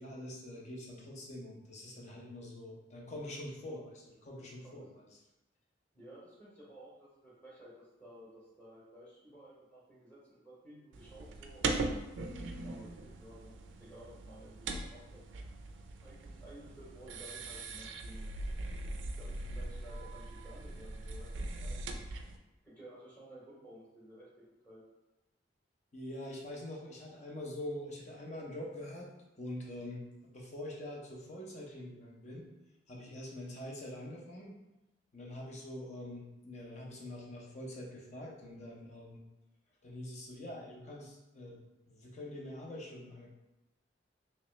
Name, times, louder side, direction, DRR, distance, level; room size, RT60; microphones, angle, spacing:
voice 1, 0.0-5.2 25.9-29.1 29.4-32.5 32.9-34.6 35.1-39.2 39.8-43.3, left 1 dB, 40° left, -2 dB, 0.7 m, -45 dB
voice 2, 5.9-11.9 12.3-15.2 16.0-18.3 19.2-24.8, right 1 dB, 10° left, -7 dB, 0.9 m, -55 dB
sound 1, 10.9-22.4, right 2 dB, 90° right, 0.4 m, -40 dB
3.1 x 2.9 x 3.0 m, 0.97 s
head